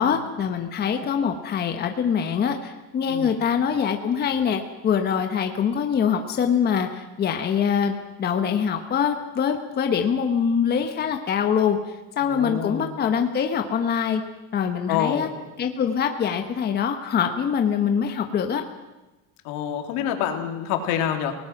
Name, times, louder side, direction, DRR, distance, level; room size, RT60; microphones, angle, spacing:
voice 1, 0.0-14.2 14.5-15.3 15.6-18.6, left 7 dB, 25° left, 5 dB, 1.2 m, -24 dB
voice 2, 12.2-12.9 14.9-15.3 19.4-21.3, left 9 dB, 75° left, 4 dB, 3.3 m, -27 dB
29.5 x 19.0 x 6.0 m, 1.1 s
cardioid pair, 165°, 37 cm